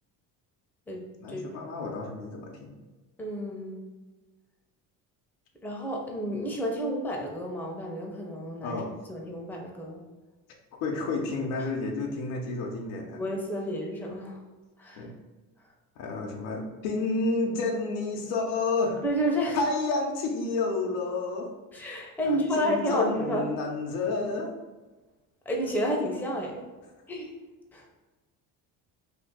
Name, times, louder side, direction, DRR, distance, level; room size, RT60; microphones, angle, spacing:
voice 1, 1.2-2.8 8.6-8.9 10.7-13.2 15.0-15.1 16.0-19.0 19.5-21.5 22.2-24.6, left 3 dB, 80° left, 1 dB, 0.8 m, -30 dB
voice 2, 3.2-3.8 5.6-8.8 9.1-10.0 11.6-11.7 13.1-14.4 14.8-15.0 19.0-19.6 21.7-23.5 25.5-26.6 27.1-27.3 27.7-27.8, equal, 5° left, -1 dB, 0.7 m, -30 dB
2.8 x 2.5 x 3.6 m, 1.2 s
supercardioid pair, 75°, 44 cm